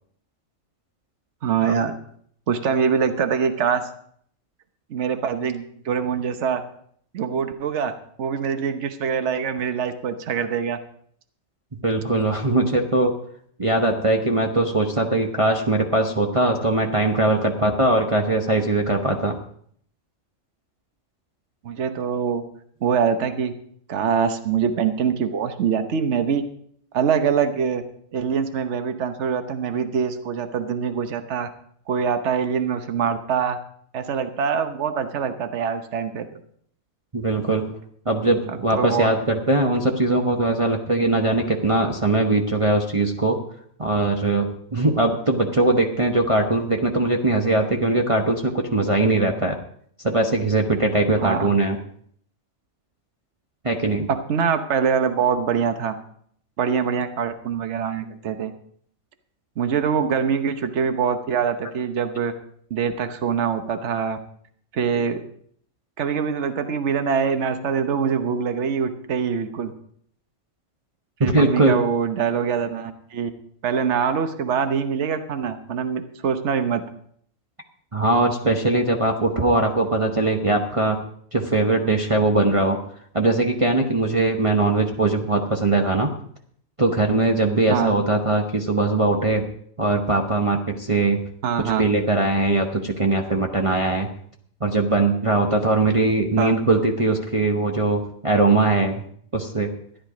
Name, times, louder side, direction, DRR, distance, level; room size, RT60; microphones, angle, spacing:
voice 1, 1.4-1.9 2.5-3.9 4.9-6.6 7.1-7.9 8.2-10.8 21.6-22.4 22.8-23.5 23.9-26.4 26.9-27.8 28.1-31.5 31.9-33.6 33.9-36.4 38.7-39.1 51.2-51.5 54.1-56.0 56.6-58.5 59.6-62.3 62.7-64.2 64.7-65.2 66.0-69.7 71.2-73.3 73.6-76.8 87.7-87.9 91.4-91.8 96.4-96.5, right 7 dB, 60° right, 8 dB, 1.2 m, -24 dB
voice 2, 11.8-13.1 13.6-19.4 37.1-37.7 38.1-43.4 43.8-49.6 50.0-51.8 53.6-54.1 71.2-71.8 77.9-81.0 81.3-82.8 83.1-86.1 86.8-89.4 89.8-91.2 91.6-94.1 94.6-99.0 99.3-99.7, right 2 dB, 25° right, 1 dB, 1.0 m, -21 dB
13.5 x 10.5 x 5.0 m, 0.63 s
omnidirectional pair, 1.4 m